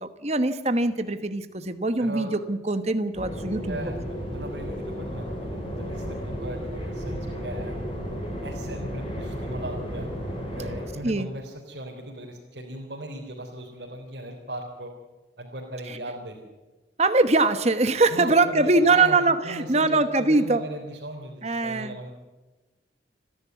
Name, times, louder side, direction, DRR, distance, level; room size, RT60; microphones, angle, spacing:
voice 1, 0.0-3.9 11.0-11.3 17.0-20.6 21.4-22.0, right 3 dB, 35° right, 9 dB, 1.2 m, -22 dB
voice 2, 2.0-2.3 3.7-7.7 8.4-10.1 10.3-14.9 15.4-16.4 18.1-22.1, right 1 dB, 65° right, -2 dB, 3.7 m, -38 dB
sound 1, 3.1-10.9, equal, 30° left, 7.9 m, -33 dB
29.5 x 11.0 x 9.3 m, 1.1 s
head